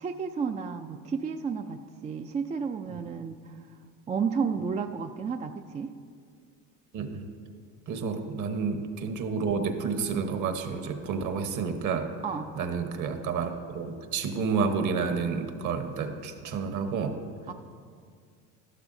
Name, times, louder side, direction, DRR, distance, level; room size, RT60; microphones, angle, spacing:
voice 1, 0.0-3.6 4.1-5.9 12.2-12.5 17.5-17.6, right 6 dB, 20° right, 6 dB, 0.3 m, -32 dB
voice 2, 7.9-12.1 12.6-17.2, right 5 dB, 50° right, 6 dB, 1.2 m, -30 dB
12.0 x 11.5 x 2.7 m, 2.1 s
supercardioid pair, 90°, 37 cm